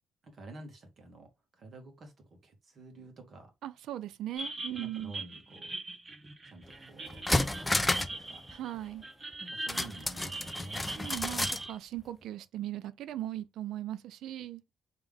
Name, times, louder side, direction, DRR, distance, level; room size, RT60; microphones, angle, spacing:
voice 1, 0.2-3.5 4.7-5.7 6.4-8.5 9.4-10.9, right 2 dB, 50° right, 1.6 m, -50 dB
voice 2, 3.6-5.1 8.5-9.0 10.9-14.6, right 13 dB, 80° right, 0.4 m, -39 dB
sound 1, 4.4-11.8, right 2 dB, 30° right, 0.8 m, -41 dB
sound 2, 6.6-6.7 7.1-8.2 8.5-8.6 9.7-11.7 12.0-12.1, left 2 dB, 15° left, 0.5 m, -31 dB
3.5 x 3.3 x 3.5 m
cardioid pair, 90°, 0 cm